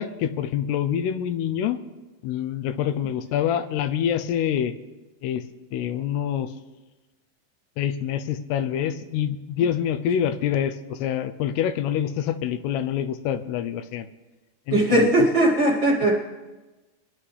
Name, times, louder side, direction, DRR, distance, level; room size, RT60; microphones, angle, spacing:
voice 1, 0.0-1.8 2.2-4.7 5.2-5.4 5.7-6.5 7.8-14.1 14.7-15.1, left 9 dB, 85° left, 10 dB, 2.8 m, -26 dB
voice 2, 14.7-16.2, right 1 dB, 40° right, -4 dB, 1.8 m, -19 dB
25.5 x 11.0 x 3.3 m, 1.1 s
omnidirectional pair, 4.7 m